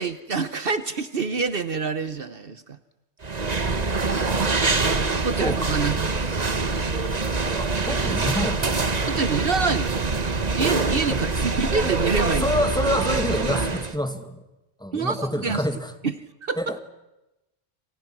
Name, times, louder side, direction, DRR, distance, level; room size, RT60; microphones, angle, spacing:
voice 1, 0.0-2.8 5.2-6.3 9.1-10.1 10.5-12.5 14.9-15.6 16.0-16.1 16.4-16.7, right 4 dB, 60° right, 12 dB, 1.2 m, -26 dB
sound 1, 3.2-14.0, right 3 dB, 40° right, 1.4 m, -24 dB
voice 2, 4.2-4.8 5.4-5.7 7.5-9.1 11.1-11.2 12.4-14.4 14.8-15.9 16.6-16.7, left 1 dB, 5° left, 7 dB, 2.2 m, -28 dB
29.0 x 26.0 x 6.1 m, 0.97 s
omnidirectional pair, 1.1 m